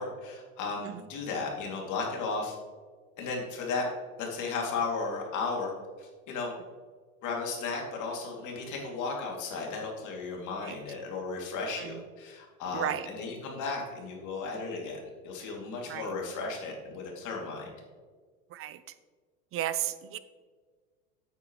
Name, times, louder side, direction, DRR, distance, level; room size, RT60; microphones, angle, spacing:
voice 1, 0.0-2.5 3.2-3.9 4.2-5.7 6.0-6.5 7.2-15.0 15.2-17.7, left 4 dB, 45° left, -1 dB, 2.6 m, -35 dB
voice 2, 12.7-13.1 15.9-16.1 18.5-18.8 19.5-20.2, right 12 dB, 35° right, 14 dB, 0.6 m, -33 dB
8.9 x 8.3 x 3.1 m, 1.5 s
hypercardioid pair, 105°, 40 cm